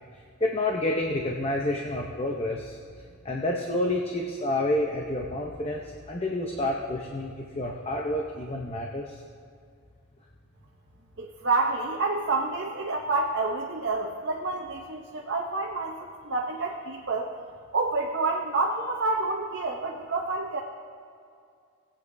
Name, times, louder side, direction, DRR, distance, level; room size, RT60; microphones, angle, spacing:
voice 1, 0.4-2.8 3.2-9.2, left 1 dB, 25° left, 0 dB, 0.7 m, -29 dB
voice 2, 11.2-17.3 17.7-20.6, right 3 dB, 55° right, -1 dB, 0.8 m, -28 dB
20.0 x 8.3 x 2.7 m, 2.3 s
head